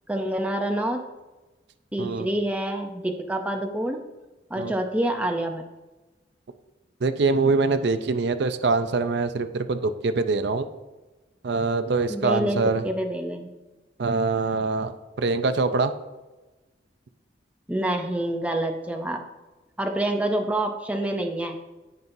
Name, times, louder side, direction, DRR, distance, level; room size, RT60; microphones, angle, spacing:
voice 1, 0.1-1.0 1.9-4.0 4.5-5.6 12.1-13.5 17.7-19.2 19.8-21.6, right 1 dB, 5° right, 3 dB, 0.6 m, -27 dB
voice 2, 7.0-10.7 11.4-12.8 14.0-15.9, right 3 dB, 60° right, 10 dB, 0.5 m, -24 dB
15.5 x 5.5 x 2.6 m, 1.1 s
head